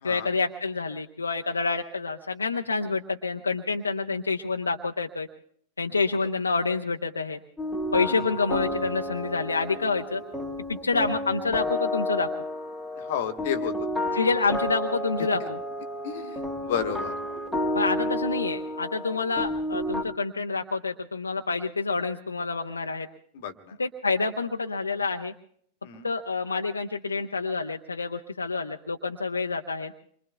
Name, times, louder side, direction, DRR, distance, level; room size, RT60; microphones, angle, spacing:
voice 1, 0.0-5.3 5.8-7.4 7.9-10.2 10.7-12.3 14.1-15.6 17.7-23.1 23.8-25.3 26.0-29.9, left 4 dB, 75° left, 3 dB, 0.7 m, -28 dB
sound 1, 7.6-20.0, left 1 dB, ahead, 2.0 m, -31 dB
voice 2, 13.0-13.7 15.4-15.5 16.0-17.1 23.3-23.8 25.8-26.1, left 8 dB, 55° left, 8 dB, 1.2 m, -32 dB
27.0 x 23.5 x 2.3 m, 0.63 s
figure-of-eight pair, 90°, 0 cm